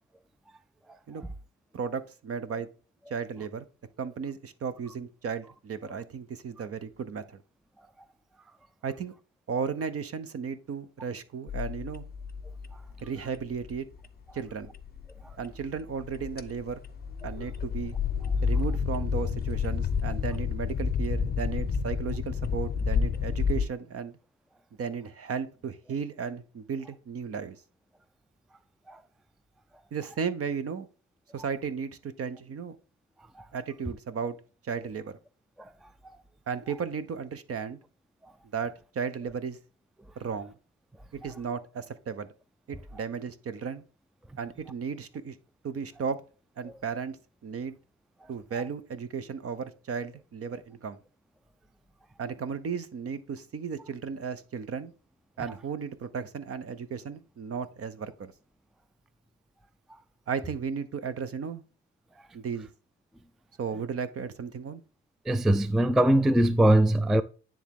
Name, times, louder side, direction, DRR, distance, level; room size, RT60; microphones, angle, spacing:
voice 1, 1.7-2.7 3.1-3.6 4.0-7.2 8.8-9.1 9.5-12.0 13.0-13.9 14.3-14.7 15.4-16.8 17.2-17.9 18.4-24.1 24.8-27.6 29.9-30.9 31.3-32.8 33.5-34.4 34.6-35.1 36.5-37.8 38.5-39.6 40.2-40.5 41.1-42.3 42.7-43.8 44.4-45.4 45.6-46.2 46.6-47.2 47.4-47.8 48.3-51.0 52.2-54.9 55.4-58.3 60.3-61.6 62.3-62.7 63.6-64.8, right 6 dB, 50° right, 0.9 m, -34 dB
sound 1, 11.5-23.6, left 6 dB, 30° left, 0.6 m, -30 dB
voice 2, 65.3-67.2, right 1 dB, ahead, 0.3 m, -21 dB
9.7 x 3.6 x 3.6 m
cardioid pair, 90°, 30 cm